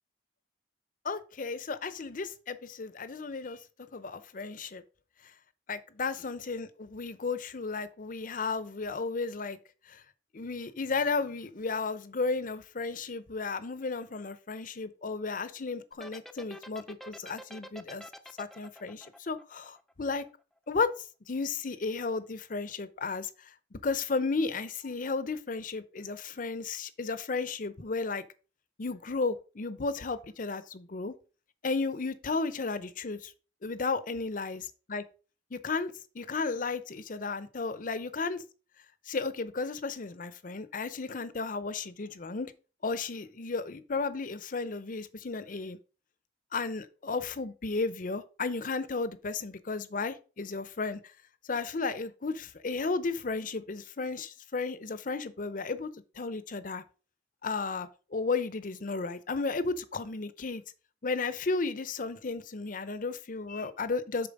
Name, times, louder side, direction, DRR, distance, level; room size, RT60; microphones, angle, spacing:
voice 1, 1.0-3.6 3.9-4.8 5.7-9.6 9.9-10.0 10.3-18.0 18.4-20.3 20.7-20.9 21.3-23.3 23.7-28.2 28.8-31.1 31.6-33.3 33.6-34.6 34.9-35.0 35.5-38.4 39.1-42.5 42.8-45.8 46.5-51.0 51.5-56.8 57.4-60.6 61.0-64.3, left 4 dB, 50° left, 0.7 m, -34 dB
sound 1, 15.9-20.3, equal, ahead, 0.5 m, -46 dB
6.9 x 4.4 x 5.2 m
head